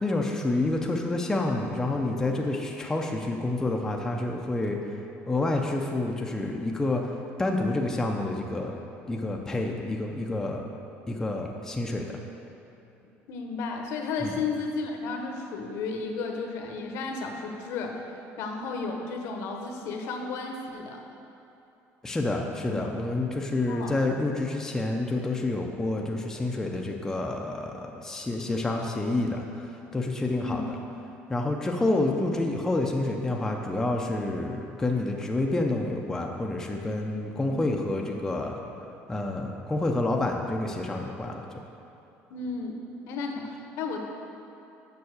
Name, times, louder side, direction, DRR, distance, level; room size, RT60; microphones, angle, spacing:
voice 1, 0.0-4.8 5.3-7.0 7.4-8.8 9.1-10.7 11.1-12.1 14.2-14.3 22.0-30.8 31.3-38.6 39.1-41.4, left 2 dB, 10° left, 0 dB, 0.6 m, -28 dB
voice 2, 13.3-18.1 18.4-21.0 22.7-22.9 23.7-24.0 30.3-30.6 37.4-37.7 42.3-44.0, left 4 dB, 70° left, 3 dB, 1.0 m, -33 dB
7.1 x 5.6 x 6.4 m, 2.9 s
cardioid pair, 145°, 5 cm